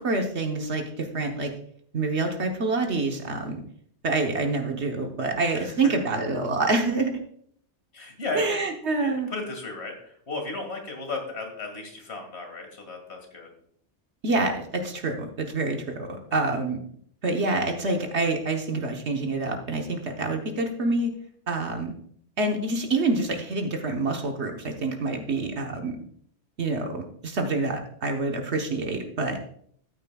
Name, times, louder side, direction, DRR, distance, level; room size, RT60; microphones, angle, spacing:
voice 1, 0.0-1.5 1.9-3.6 4.0-7.2 8.3-9.3 14.2-16.8 17.2-21.1 21.5-21.9 22.4-26.0 26.6-29.4, right 3 dB, 70° right, 3 dB, 1.3 m, -27 dB
voice 2, 7.9-8.6 9.0-13.5 16.3-16.4, left 2 dB, 65° left, 3 dB, 2.4 m, -35 dB
13.5 x 9.2 x 2.3 m, 0.63 s
omnidirectional pair, 1.2 m